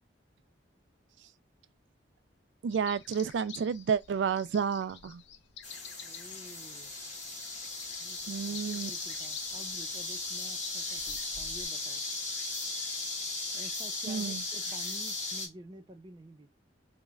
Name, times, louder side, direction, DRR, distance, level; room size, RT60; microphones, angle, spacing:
voice 1, 2.6-5.2 8.3-8.9 14.1-14.4, right 6 dB, 70° right, 0.3 m, -30 dB
sound 1, 2.7-11.7, left 8 dB, 65° left, 0.4 m, -50 dB
sound 2, 5.6-15.5, left 2 dB, 40° left, 1.2 m, -37 dB
voice 2, 6.0-7.0 8.0-8.2 8.4-12.0 13.5-16.5, right 1 dB, 25° right, 0.6 m, -50 dB
3.1 x 2.2 x 3.5 m
head